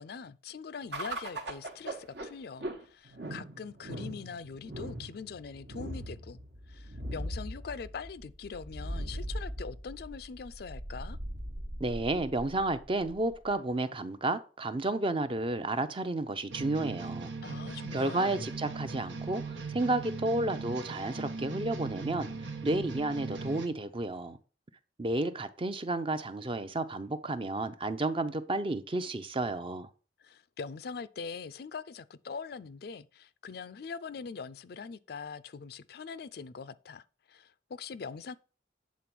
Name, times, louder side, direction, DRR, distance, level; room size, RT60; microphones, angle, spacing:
voice 1, 0.0-6.4 6.7-11.2 17.4-18.4 30.2-38.3, left 5 dB, 55° left, 0.4 m, -42 dB
sound 1, 0.9-13.5, right 1 dB, 65° right, 1.2 m, -40 dB
voice 2, 11.8-17.3 17.9-22.3 22.6-24.4 25.0-29.9, right 2 dB, 30° right, 0.6 m, -31 dB
sound 2, 16.5-23.7, right 4 dB, 90° right, 1.1 m, -39 dB
8.4 x 3.9 x 6.0 m
head